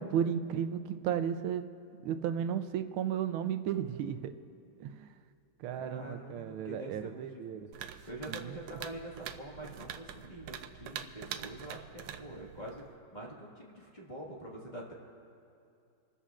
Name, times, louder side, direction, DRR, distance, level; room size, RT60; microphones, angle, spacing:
voice 1, 0.0-1.7 2.0-4.3 4.8-5.1 5.6-7.7 8.3-8.6, right 9 dB, 90° right, 9 dB, 1.5 m, -34 dB
voice 2, 5.7-7.6 8.1-12.8 13.1-14.9, right 1 dB, 25° left, -3 dB, 1.7 m, -45 dB
sound 1, 7.7-12.9, right 9 dB, 70° right, 1.1 m, -45 dB
28.5 x 14.0 x 2.5 m, 2.5 s
omnidirectional pair, 2.3 m